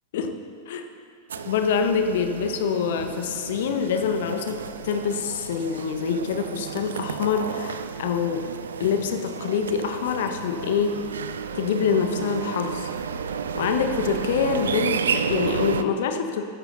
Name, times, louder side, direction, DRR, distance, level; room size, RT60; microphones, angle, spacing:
sound 1, 1.3-15.8, right 6 dB, 65° right, 0.6 m, -32 dB
voice 1, 1.4-4.6 4.8-8.5 8.8-11.0 11.5-12.9 13.5-16.4, left 6 dB, 55° left, 6 dB, 1.2 m, -25 dB
25.0 x 13.5 x 2.7 m, 2.5 s
figure-of-eight pair, 90°, 0 cm